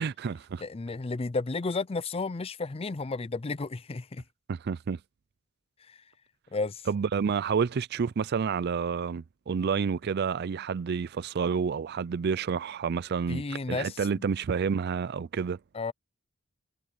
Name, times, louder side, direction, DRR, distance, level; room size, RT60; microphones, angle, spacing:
voice 1, 0.0-0.6 4.5-5.0 6.9-13.4 13.7-15.6, right 6 dB, 55° right, 0.4 m, -29 dB
voice 2, 0.6-4.2 5.9-6.0 6.5-6.9 13.3-14.0 15.7-15.9, left 3 dB, 30° left, 0.5 m, -32 dB
head